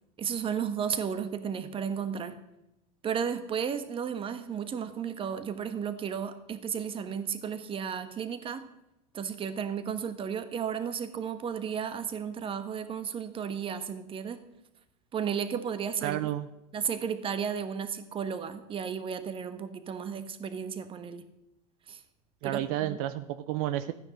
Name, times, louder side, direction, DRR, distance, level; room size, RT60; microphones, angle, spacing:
voice 1, 0.2-2.4 3.0-8.6 9.1-14.4 15.1-16.3 16.7-21.2 21.9-22.0 22.4-23.0, right 7 dB, 25° right, 11 dB, 1.3 m, -33 dB
voice 2, 16.0-16.5 22.4-23.9, right 13 dB, 65° right, 12 dB, 0.7 m, -31 dB
14.0 x 9.6 x 6.5 m, 0.88 s
supercardioid pair, 130°, 19 cm